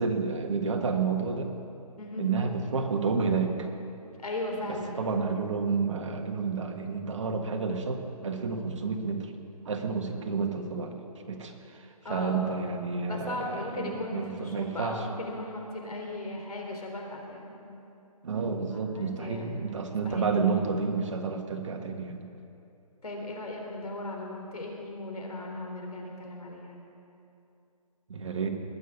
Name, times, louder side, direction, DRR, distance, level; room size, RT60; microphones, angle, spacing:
voice 1, 0.0-1.5 2.2-3.7 4.7-9.3 9.6-15.0 18.2-22.2 28.1-28.5, right 4 dB, 55° right, 4 dB, 1.6 m, -30 dB
voice 2, 4.2-5.0 12.0-12.5 13.1-17.6 18.7-19.6 20.0-20.3 23.0-26.8, left 1 dB, 80° left, 1 dB, 3.7 m, -37 dB
20.0 x 6.8 x 8.5 m, 2.7 s
hypercardioid pair, 160°, 19 cm